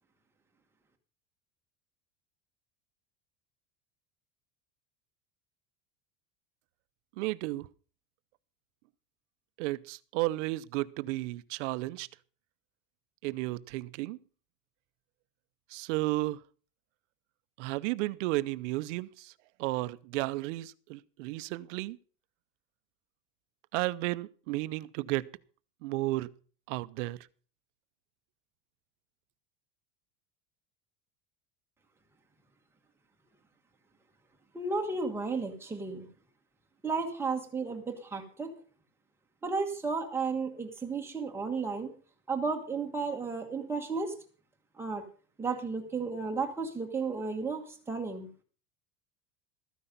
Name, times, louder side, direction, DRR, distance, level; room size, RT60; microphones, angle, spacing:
voice 1, 7.2-7.7 9.6-12.1 13.2-14.2 15.7-16.4 17.6-19.3 19.6-22.0 23.7-25.3 25.8-26.3 26.7-27.2, right 19 dB, 70° right, 0.7 m, -33 dB
voice 2, 34.5-36.1 36.8-38.5 39.4-41.9 42.3-44.1 44.8-45.0 45.4-48.3, right 4 dB, 5° right, 1.4 m, -33 dB
13.5 x 9.9 x 5.3 m
cardioid pair, 180°, 38 cm